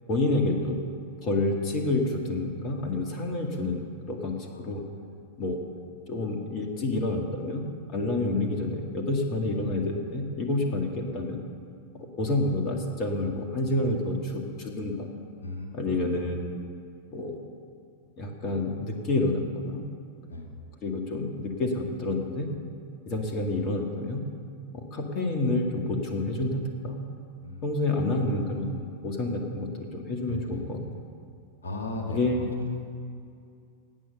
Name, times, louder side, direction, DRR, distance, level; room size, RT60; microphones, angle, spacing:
voice 1, 0.1-0.8 1.2-3.8 4.1-4.8 5.4-5.6 6.1-7.6 7.9-11.4 12.2-15.1 15.7-16.5 17.1-17.4 18.2-19.8 20.8-22.5 23.1-24.2 24.7-27.0 27.6-30.8 32.1-32.6, left 2 dB, 35° left, 2 dB, 2.0 m, -28 dB
voice 2, 15.4-16.0 20.3-20.6 27.4-27.8 30.3-30.7 31.6-32.2, left 2 dB, 75° left, 1 dB, 2.0 m, -37 dB
18.0 x 8.8 x 6.8 m, 2.4 s
figure-of-eight pair, 90°, 0 cm